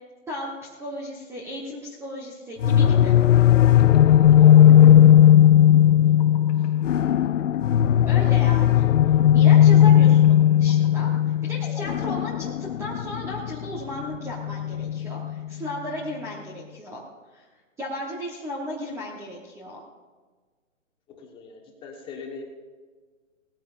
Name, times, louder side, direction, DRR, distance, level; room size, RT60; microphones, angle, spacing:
voice 1, 0.3-3.2 8.1-8.8 9.3-11.1 11.4-17.0 17.3-17.5 17.8-19.8, left 1 dB, 5° right, -3 dB, 1.1 m, -35 dB
sound 1, 2.6-15.4, left 11 dB, 70° left, 0.5 m, -17 dB
sound 2, 3.5-14.2, left 7 dB, 30° left, 1.1 m, -42 dB
voice 2, 4.4-4.8 6.5-6.7 21.1-22.4, left 5 dB, 15° left, 1 dB, 1.5 m, -41 dB
19.0 x 14.5 x 2.6 m, 1.4 s
hypercardioid pair, 140°, 40 cm